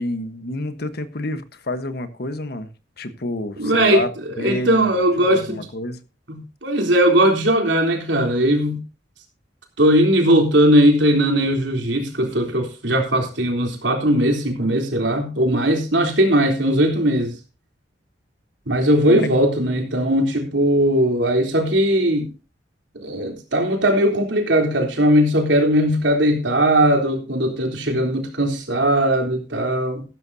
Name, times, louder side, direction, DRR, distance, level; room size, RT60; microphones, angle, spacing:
voice 1, 0.0-2.7 3.0-6.0 19.0-19.3, left 1 dB, 60° left, 1.3 m, -28 dB
voice 2, 3.6-4.0 4.4-5.6 6.3-8.8 9.8-17.4 18.7-22.3 23.0-30.0, right 1 dB, 75° right, 3.6 m, -19 dB
15.0 x 12.5 x 2.8 m
head